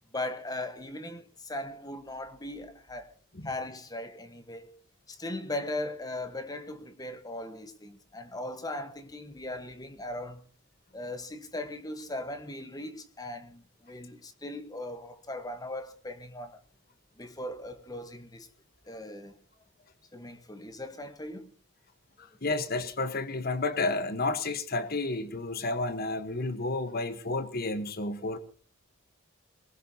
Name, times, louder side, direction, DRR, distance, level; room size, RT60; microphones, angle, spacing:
voice 1, 0.1-3.1 3.4-4.7 5.1-10.4 10.9-16.6 17.2-18.5 18.9-19.4 20.1-21.5, left 1 dB, 20° left, 1.2 m, -38 dB
voice 2, 22.2-28.4, left 2 dB, 45° left, 1.2 m, -31 dB
21.5 x 19.5 x 2.8 m
head